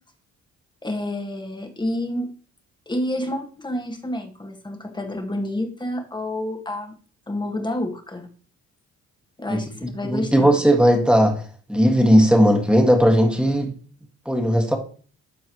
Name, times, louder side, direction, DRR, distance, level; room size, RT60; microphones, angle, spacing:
voice 1, 0.8-2.3 2.9-7.0 7.3-8.3 9.4-10.5 14.6-14.8, left 1 dB, 15° left, 5 dB, 1.6 m, -29 dB
voice 2, 9.5-13.7 14.3-14.8, equal, 5° right, 3 dB, 1.9 m, -18 dB
12.5 x 4.5 x 3.0 m, 0.41 s
cardioid pair, 90°, 30 cm